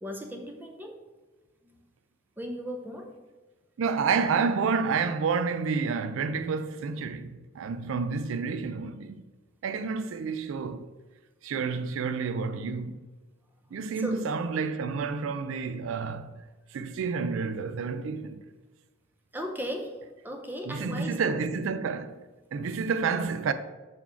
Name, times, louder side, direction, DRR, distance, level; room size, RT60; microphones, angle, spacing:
voice 1, 0.0-1.0 1.6-1.8 2.4-3.2 13.9-14.2 19.3-20.0 20.2-21.3, equal, 10° right, 0.6 m, -36 dB
voice 2, 3.8-9.2 9.6-10.9 11.4-13.0 13.7-16.4 16.7-18.4 20.7-22.2 22.5-23.5, right 5 dB, 70° right, 0.4 m, -29 dB
5.8 x 4.0 x 4.6 m
head